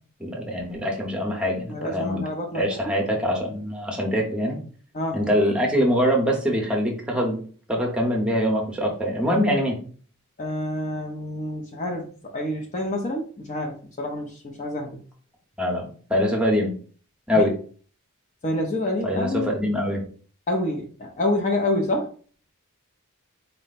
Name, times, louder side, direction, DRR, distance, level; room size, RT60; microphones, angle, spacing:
voice 1, 0.2-2.2 2.5-4.6 5.1-7.4 7.7-9.8 15.6-16.7 17.3-17.5 19.0-20.0, equal, 5° right, -1 dB, 0.8 m, -24 dB
voice 2, 1.7-2.8 4.9-5.2 10.4-15.0 17.3-17.5 18.4-19.5 20.5-22.1, left 1 dB, 35° left, 2 dB, 0.5 m, -28 dB
4.3 x 2.1 x 4.0 m, 0.42 s
head